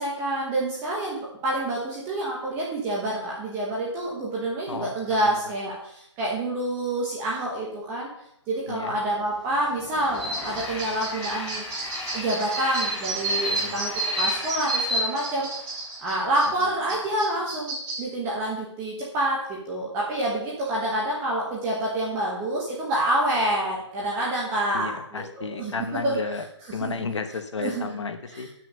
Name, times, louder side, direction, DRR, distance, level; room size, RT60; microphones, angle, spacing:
voice 1, 0.0-8.1 8.5-11.7 12.1-15.5 16.0-26.2 26.8-26.9 27.6-27.9, right 1 dB, 15° right, -4 dB, 1.2 m, -27 dB
voice 2, 4.7-5.5 8.7-9.0 13.5-13.8 24.7-26.5 26.7-28.5, left 5 dB, 70° left, 7 dB, 1.2 m, -33 dB
Train, 9.0-16.4, left 2 dB, 5° left, 0.6 m, -38 dB
sound 1, 10.1-18.0, right 2 dB, 30° right, 3.5 m, -30 dB
9.6 x 5.9 x 5.5 m, 0.75 s
hypercardioid pair, 160°, 16 cm